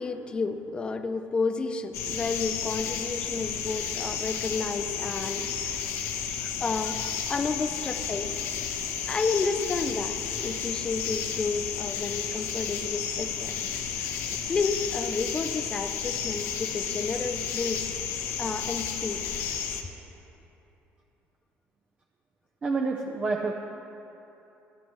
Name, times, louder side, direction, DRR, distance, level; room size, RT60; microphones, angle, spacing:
voice 1, 0.0-5.8 6.4-8.3 8.7-8.8 9.1-13.5 14.0-14.1 14.5-17.9 18.4-19.3, left 4 dB, 20° left, 8 dB, 0.5 m, -31 dB
sound 1, 1.9-19.8, left 7 dB, 80° left, 1.1 m, -32 dB
voice 2, 22.6-23.5, right 3 dB, 25° right, 1 dB, 0.6 m, -28 dB
28.0 x 9.8 x 3.1 m, 3.0 s
cardioid pair, 150°, 5 cm